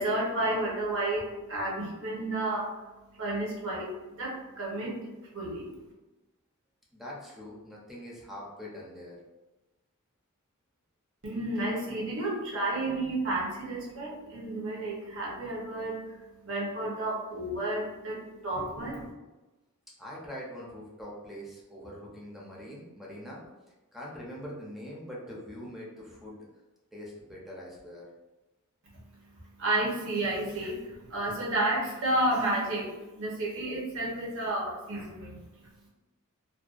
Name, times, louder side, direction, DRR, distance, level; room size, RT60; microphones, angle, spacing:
voice 1, 0.0-2.8 3.1-5.7 11.2-19.1 28.9-29.0 29.3-32.9 33.2-35.9, right 1 dB, 65° right, -3 dB, 0.8 m, -32 dB
voice 2, 6.9-9.2 20.0-23.4 23.9-26.4 26.9-28.1, equal, ahead, -5 dB, 0.5 m, -43 dB
2.5 x 2.1 x 2.4 m, 1.1 s
head